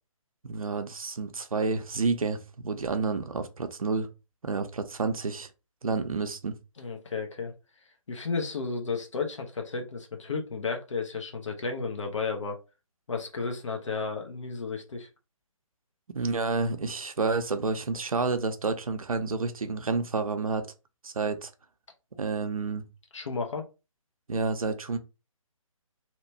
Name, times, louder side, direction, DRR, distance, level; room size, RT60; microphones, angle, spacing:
voice 1, 0.4-4.1 4.4-5.5 5.8-6.6 16.1-20.7 21.0-21.5 22.2-22.9 24.3-25.0, right 4 dB, 75° right, 0.6 m, -29 dB
voice 2, 6.8-7.5 8.1-12.6 13.1-15.1 22.1-22.2 23.1-23.6, left 4 dB, 60° left, 0.8 m, -33 dB
2.9 x 2.2 x 2.7 m
figure-of-eight pair, 140°, 18 cm